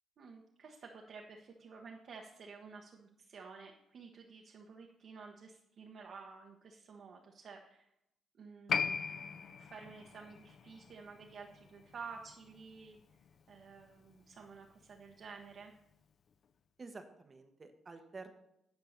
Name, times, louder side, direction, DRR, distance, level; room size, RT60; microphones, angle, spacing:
voice 1, 0.2-7.9 8.3-13.0 13.5-15.7, right 5 dB, 60° right, 0 dB, 1.1 m, -52 dB
Piano, 8.7-15.7 15.9-16.0, left 6 dB, 55° left, 0.5 m, -41 dB
voice 2, 16.8-18.3, right 3 dB, 30° right, 7 dB, 1.0 m, -50 dB
9.5 x 4.6 x 6.6 m, 0.80 s
cardioid pair, 90°, 0 cm